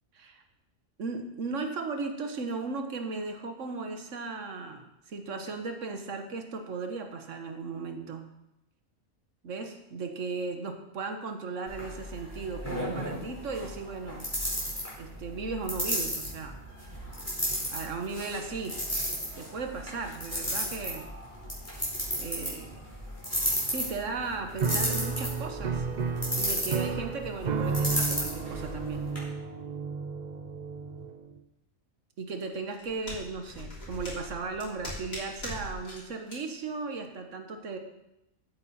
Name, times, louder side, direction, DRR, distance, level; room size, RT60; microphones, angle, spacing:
voice 1, 1.0-8.2 9.4-14.3 15.0-16.6 17.7-18.8 19.4-21.1 22.2-22.8 23.7-25.9 26.4-29.1 32.2-37.8, right 4 dB, 65° right, 5 dB, 1.6 m, -36 dB
sound 1, 11.7-29.2, equal, 10° left, 4.4 m, -34 dB
Piano, 24.6-31.4, right 5 dB, 45° right, 0.6 m, -32 dB
sound 2, 32.5-36.0 36.3-36.4, left 1 dB, 85° left, 4.0 m, -41 dB
14.5 x 8.8 x 4.3 m, 0.88 s
omnidirectional pair, 1.4 m